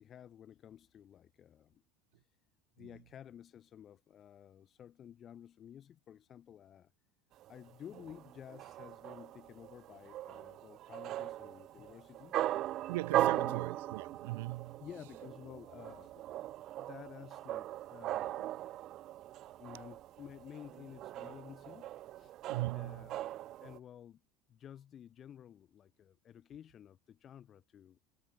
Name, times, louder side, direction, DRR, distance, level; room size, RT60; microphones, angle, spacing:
voice 1, 0.0-1.8 2.1-2.3 2.8-6.9 7.5-12.5 13.2-13.7 14.8-16.2 16.8-18.4 19.6-22.3 22.7-23.2 23.6-24.2 24.5-28.0, left 9 dB, 25° left, 4.8 m, -53 dB
sound 1, 7.4-23.8, right 14 dB, 35° right, 1.0 m, -39 dB
voice 2, 12.9-14.8 18.4-18.5 22.5-23.2, right 21 dB, 80° right, 4.0 m, -39 dB
cardioid pair, 165°, 0 cm